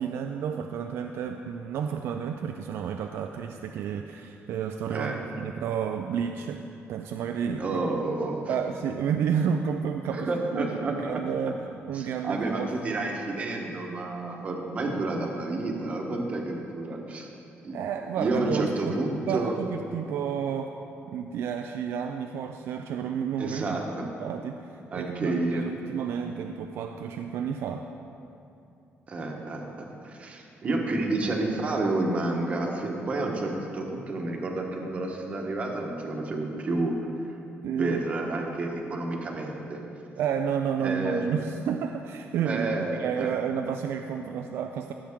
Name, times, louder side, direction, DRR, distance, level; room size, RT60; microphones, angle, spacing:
voice 1, 0.0-6.6 6.9-7.8 8.5-11.6 11.9-12.9 17.7-19.0 19.3-20.7 21.1-23.8 24.2-27.9 37.6-38.0 40.2-42.7 43.0-44.9, right 7 dB, 70° right, 5 dB, 0.4 m, -31 dB
voice 2, 7.6-8.4 10.1-11.2 11.9-17.3 17.6-17.8 18.2-19.6 23.4-24.0 24.9-25.6 29.1-37.0 37.8-39.8 40.8-41.2 42.4-43.3, right 2 dB, 30° right, 1 dB, 1.0 m, -30 dB
15.0 x 7.4 x 3.6 m, 2.7 s
cardioid pair, 175°, 4 cm